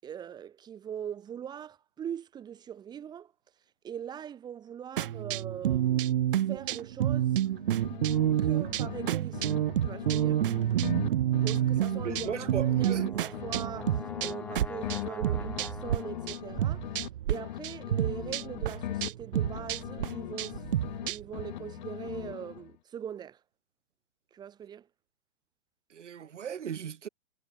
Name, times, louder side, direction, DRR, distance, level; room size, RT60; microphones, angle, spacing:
voice 1, 0.0-3.3 3.8-6.2 6.5-7.3 8.4-9.6 9.8-10.4 11.4-16.9 17.3-20.6 21.1-23.4 24.3-24.9, right 9 dB, 10° right, 6.9 m, -41 dB
sound 1, 5.0-16.0 16.3-17.3 17.6-21.4, right 12 dB, 50° right, 3.7 m, -29 dB
sound 2, 7.4-9.1 9.3-13.1 13.3-17.1 17.3-21.1 21.3-22.8, left 14 dB, 40° left, 2.7 m, -40 dB
voice 2, 12.0-13.1 25.9-27.1, right 8 dB, 90° right, 3.7 m, -37 dB
Brass instrument, 12.3-16.6, left 3 dB, 5° left, 2.9 m, -44 dB
hypercardioid pair, 170°, 35 cm